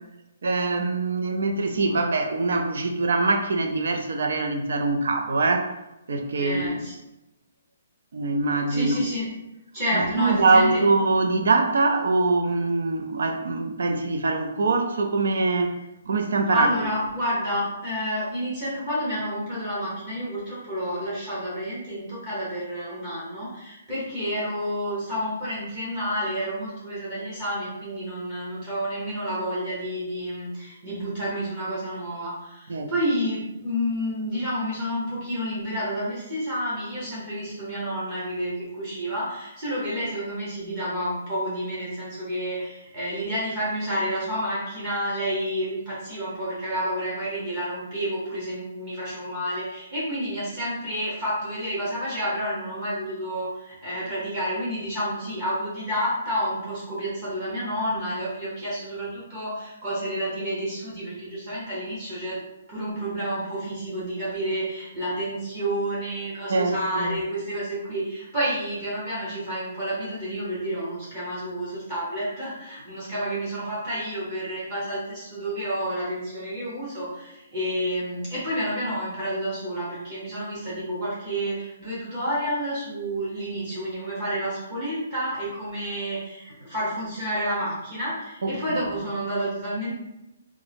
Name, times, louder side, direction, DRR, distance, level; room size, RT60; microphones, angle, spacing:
voice 1, 0.4-5.7 6.1-6.7 8.1-9.0 9.9-15.8 16.1-16.7 32.7-32.9 66.5-67.2 88.4-88.8, right 3 dB, 60° right, 5 dB, 0.4 m, -23 dB
voice 2, 6.4-6.9 8.7-9.3 9.7-10.8 16.5-62.4 62.7-90.0, equal, 25° right, -9 dB, 0.9 m, -30 dB
3.5 x 2.0 x 3.3 m, 0.91 s
hypercardioid pair, 180°, 0 cm